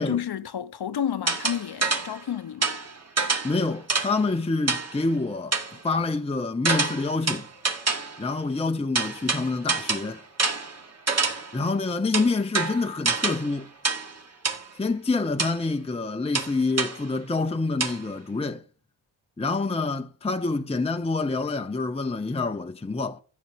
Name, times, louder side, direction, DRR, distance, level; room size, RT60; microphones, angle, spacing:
voice 1, 0.0-2.8, left 9 dB, 55° left, 1.1 m, -30 dB
sound 1, 1.3-2.2 2.6-4.2 4.7-5.0 5.5-5.8 6.6-8.2 8.9-11.6 12.1-13.5 13.8-14.2 14.4-14.7 15.4-15.6 16.3-17.0 17.8-18.0, right 4 dB, 35° right, 2.6 m, -27 dB
voice 2, 3.4-7.5 8.2-10.2 11.5-13.7 14.7-18.6 19.4-23.2, left 3 dB, 15° left, 0.8 m, -27 dB
14.0 x 5.9 x 8.3 m
cardioid pair, 105°, 45 cm